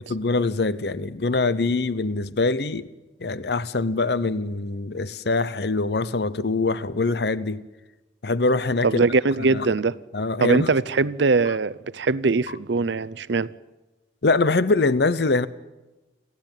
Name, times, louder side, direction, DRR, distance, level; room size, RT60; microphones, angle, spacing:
voice 1, 0.1-2.9 3.2-7.6 8.2-8.9 9.5-9.7 10.1-10.7 14.2-15.5, left 3 dB, 60° left, 0.8 m, -23 dB
voice 2, 8.8-10.0 10.4-13.5, right 3 dB, 75° right, 0.6 m, -21 dB
29.5 x 12.5 x 9.0 m
head